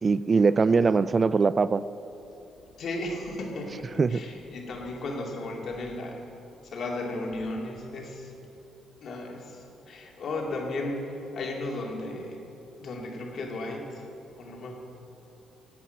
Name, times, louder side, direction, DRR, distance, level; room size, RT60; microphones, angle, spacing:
voice 1, 0.0-1.8 4.0-4.2, right 4 dB, 35° right, 16 dB, 0.3 m, -22 dB
voice 2, 2.8-6.2 6.6-8.3 9.0-12.4 12.8-14.0 14.4-14.8, left 2 dB, 60° left, 0 dB, 2.4 m, -35 dB
12.0 x 8.2 x 9.0 m, 3.0 s
cardioid pair, 90°, 0 cm